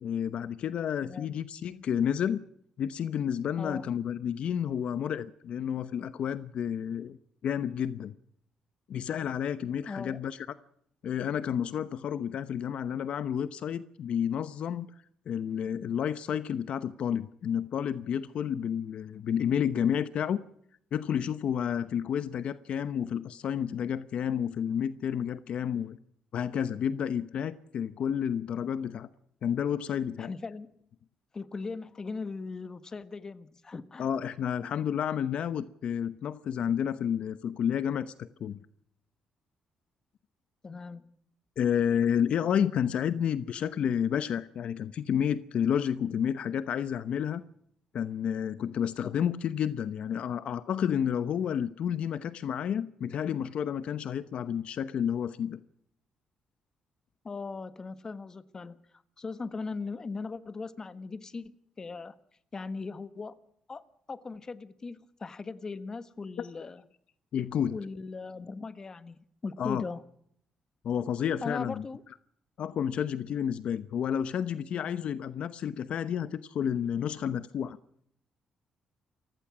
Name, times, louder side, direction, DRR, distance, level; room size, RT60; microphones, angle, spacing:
voice 1, 0.0-2.4 2.8-7.2 7.4-8.1 8.9-10.4 11.0-14.9 15.3-20.4 20.9-26.0 26.3-29.1 29.4-30.3 34.0-38.6 41.6-47.4 47.9-55.6 66.4-66.5 67.3-67.7 69.6-69.8 70.8-71.9 72.6-77.8, left 8 dB, 65° left, 0.9 m, -30 dB
voice 2, 9.9-10.2 30.2-30.7 31.3-34.1 40.6-41.0 57.2-58.8 59.2-62.2 62.5-63.4 63.7-66.8 67.7-70.0 71.4-72.0, left 4 dB, 30° left, 1.3 m, -39 dB
28.5 x 16.0 x 6.2 m
cardioid pair, 100°, 2 cm